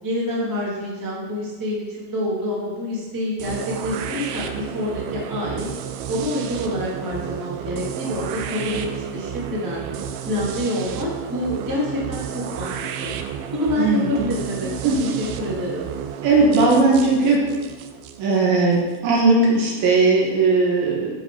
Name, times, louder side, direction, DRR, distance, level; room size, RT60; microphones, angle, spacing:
voice 1, 0.0-5.7 6.1-9.8 10.2-12.7 13.0-13.1 13.5-14.7 15.0-15.9, left 1 dB, 25° right, -6 dB, 0.4 m, -27 dB
sound 1, 3.4-19.2, right 8 dB, 85° right, 2.5 m, -32 dB
voice 2, 13.8-14.1 14.8-15.0 16.2-17.4 18.2-21.1, right 3 dB, 70° right, -3 dB, 3.3 m, -18 dB
11.0 x 4.6 x 4.6 m, 1.2 s
omnidirectional pair, 4.6 m